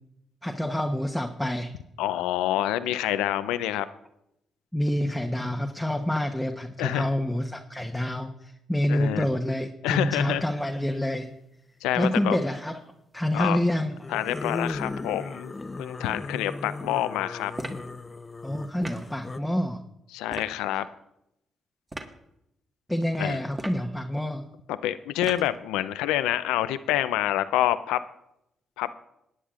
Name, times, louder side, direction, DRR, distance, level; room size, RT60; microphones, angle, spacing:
voice 1, 0.4-1.7 4.7-11.3 11.9-12.8 13.1-13.9 18.4-19.8 22.9-24.4, left 1 dB, 5° left, 2 dB, 1.0 m, -27 dB
voice 2, 2.0-3.9 6.8-7.1 8.9-9.3 9.8-10.4 11.8-12.4 13.3-13.6 14.1-17.5 20.1-20.9 23.2-23.4 24.7-28.0 28.8-28.9, left 13 dB, 85° left, 13 dB, 0.5 m, -27 dB
sound 1, 10.1-10.4 12.0-12.5 13.9-19.4, left 3 dB, 30° left, 0.7 m, -37 dB
sound 2, 17.6-17.9 18.8-19.1 20.3-20.6 21.9-22.1 23.5-23.9 25.2-25.6, right 1 dB, 25° right, 1.5 m, -37 dB
20.0 x 10.0 x 2.5 m, 0.83 s
supercardioid pair, 50°, 0 cm